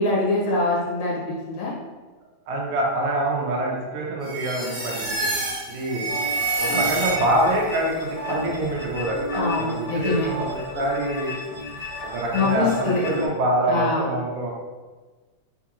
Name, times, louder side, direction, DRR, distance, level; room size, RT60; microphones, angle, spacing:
voice 1, 0.0-1.7 9.3-10.3 12.3-13.0 13.7-14.1, left 3 dB, 80° left, -5 dB, 1.9 m, -24 dB
voice 2, 2.5-5.3 5.7-6.1 6.6-11.4 12.0-14.5, right 1 dB, 85° right, -2 dB, 1.2 m, -25 dB
sound 1, 4.2-7.6, right 3 dB, 70° right, 2.0 m, -27 dB
sound 2, 6.1-13.3, left 1 dB, 45° left, 1.4 m, -33 dB
4.4 x 2.8 x 2.4 m, 1.3 s
omnidirectional pair, 3.3 m